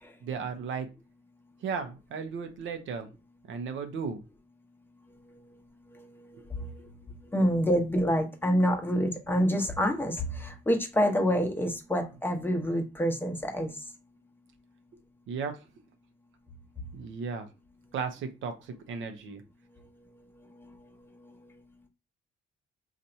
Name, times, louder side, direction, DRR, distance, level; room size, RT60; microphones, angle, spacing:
voice 1, 0.2-0.9 1.6-3.1 3.5-4.2 6.3-6.4 15.3-15.7 16.9-17.5 17.9-19.4, right 5 dB, 75° right, 7 dB, 0.7 m, -35 dB
voice 2, 7.3-13.7, equal, 10° left, 3 dB, 0.9 m, -27 dB
2.7 x 2.5 x 4.3 m, 0.29 s
cardioid pair, 90°, 20 cm